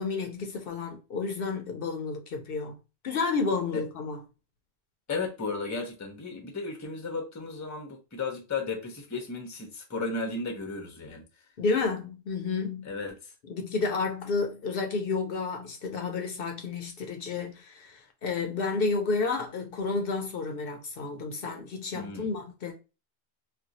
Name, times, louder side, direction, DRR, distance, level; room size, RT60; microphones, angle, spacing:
voice 1, 0.0-2.8 3.0-4.2 11.6-12.9 13.5-22.7, left 4 dB, 65° left, 0.7 m, -31 dB
voice 2, 5.1-11.2 12.8-13.3 21.9-22.3, left 3 dB, 20° left, 0.6 m, -34 dB
2.5 x 2.2 x 3.9 m
omnidirectional pair, 1.1 m